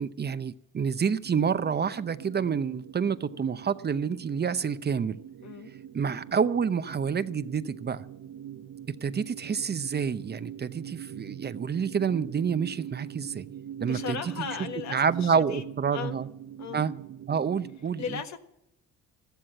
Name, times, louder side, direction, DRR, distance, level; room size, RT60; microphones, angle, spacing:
voice 1, 0.0-5.2 5.9-8.0 8.9-13.5 13.8-14.3 14.9-16.3 16.7-16.9 17.3-18.2, right 6 dB, 35° right, 0.7 m, -28 dB
sound 1, 1.2-17.8, right 10 dB, 65° right, 0.9 m, -43 dB
voice 2, 13.8-15.6 15.9-16.2 16.6-16.9 18.0-18.4, left 8 dB, 70° left, 1.5 m, -36 dB
14.0 x 12.5 x 7.6 m
cardioid pair, 90°, 30 cm